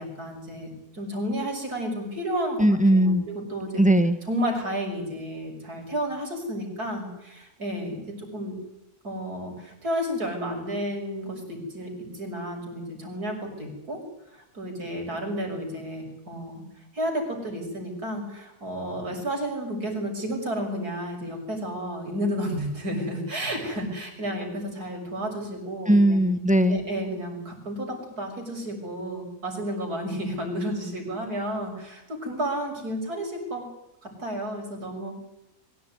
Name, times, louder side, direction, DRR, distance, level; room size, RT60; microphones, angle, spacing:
voice 1, 0.0-2.6 2.9-3.8 4.3-8.6 9.0-14.0 14.3-16.6 16.9-26.3 26.7-33.6 34.0-35.1, equal, 70° right, 2 dB, 6.8 m, -32 dB
voice 2, 2.6-3.2 3.8-4.2 25.9-26.8, right 1 dB, 5° right, 10 dB, 1.4 m, -19 dB
23.5 x 16.5 x 9.7 m, 0.88 s
omnidirectional pair, 1.7 m